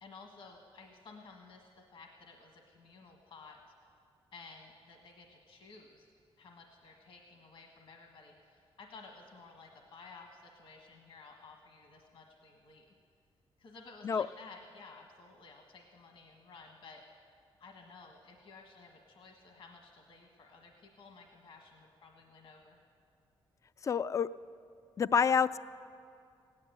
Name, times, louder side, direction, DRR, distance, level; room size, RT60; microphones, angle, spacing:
voice 1, 0.0-3.6 4.3-6.1 6.4-12.9 13.6-17.0 17.6-22.8, left 4 dB, 65° left, 2 dB, 1.5 m, -54 dB
voice 2, 23.8-24.3 25.0-25.6, left 6 dB, 35° left, 15 dB, 0.3 m, -27 dB
16.5 x 10.5 x 8.1 m, 2.4 s
cardioid pair, 100°, 9 cm